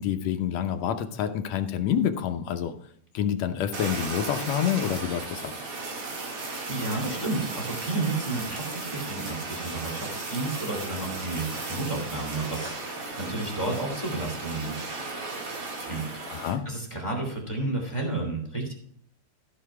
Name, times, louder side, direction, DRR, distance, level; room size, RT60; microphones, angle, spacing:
voice 1, 0.0-2.8 3.1-5.5 16.3-16.6, left 9 dB, 70° left, 6 dB, 1.9 m, -27 dB
Fire, 3.7-16.6, right 3 dB, 70° right, 3.5 m, -35 dB
voice 2, 6.3-14.8 15.8-16.0 16.3-18.7, right 2 dB, 10° left, 0 dB, 2.5 m, -32 dB
14.5 x 5.6 x 4.8 m, 0.64 s
omnidirectional pair, 3.4 m